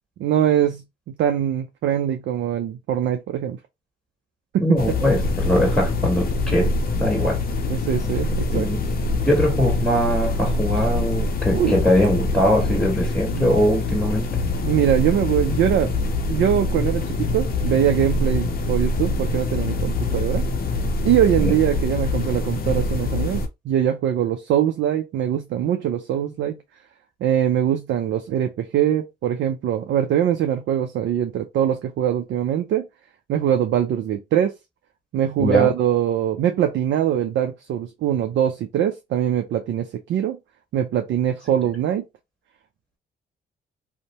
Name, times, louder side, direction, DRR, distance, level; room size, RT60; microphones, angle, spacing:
voice 1, 0.2-0.8 1.2-3.6 4.5-4.8 7.7-8.7 11.5-11.8 13.3-13.5 14.6-15.9 16.3-20.4 21.0-26.6 27.2-32.9 33.3-34.5 35.1-40.4 40.7-42.0, right 10 dB, 65° right, 0.4 m, -22 dB
voice 2, 4.6-6.7 7.0-7.4 8.5-8.8 9.1-14.3 21.4-21.5 35.4-35.7, equal, 5° left, 1.5 m, -21 dB
sound 1, 4.8-23.5, left 2 dB, 45° left, 0.6 m, -24 dB
2.6 x 2.1 x 2.9 m
supercardioid pair, 55°, 20 cm